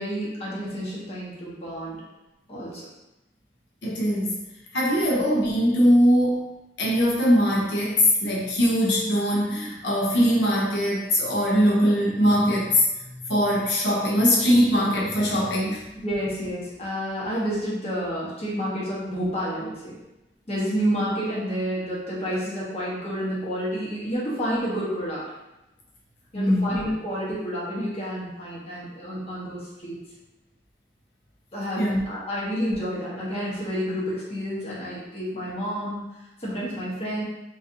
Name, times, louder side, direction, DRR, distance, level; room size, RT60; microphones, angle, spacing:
voice 1, 0.0-2.0 2.5-2.8 16.0-20.0 20.5-25.2 26.3-30.0 31.5-36.0 36.4-37.2, equal, 35° left, -6 dB, 1.0 m, -29 dB
voice 2, 3.8-4.4 4.7-12.8 13.3-15.8 26.3-26.8 31.8-32.0, equal, 90° left, -4 dB, 0.7 m, -21 dB
4.0 x 2.6 x 2.6 m, 0.97 s
head